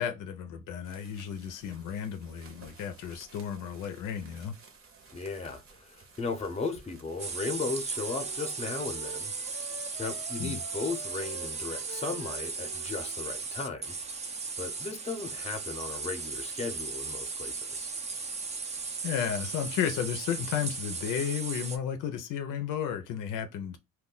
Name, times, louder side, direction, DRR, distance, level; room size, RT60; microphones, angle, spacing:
voice 1, 0.0-4.5 10.4-10.6 19.0-23.8, left 8 dB, 90° left, 0.5 m, -33 dB
sound 1, 0.8-8.5, right 4 dB, 45° right, 0.8 m, -55 dB
voice 2, 5.1-9.3 10.0-13.9 14.6-17.9, left 4 dB, 20° left, 0.6 m, -36 dB
sound 2, 7.2-21.8, right 4 dB, 25° right, 0.4 m, -37 dB
Wind instrument woodwind instrument, 7.9-13.3, right 5 dB, 85° right, 0.6 m, -47 dB
2.3 x 2.1 x 3.7 m
cardioid pair, 90°, 30 cm